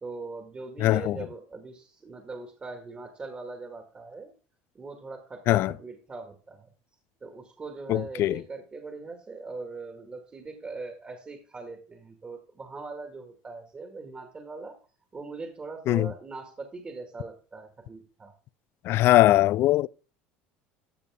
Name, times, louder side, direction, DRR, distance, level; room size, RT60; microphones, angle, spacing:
voice 1, 0.0-4.3 4.7-6.7 7.2-14.8 15.1-18.3, right 3 dB, 25° right, 1.9 m, -41 dB
voice 2, 0.8-1.2 5.5-5.7 7.9-8.4 15.9-16.1 18.8-19.9, left 15 dB, 55° left, 0.4 m, -21 dB
13.5 x 6.6 x 3.6 m
supercardioid pair, 105°, 5 cm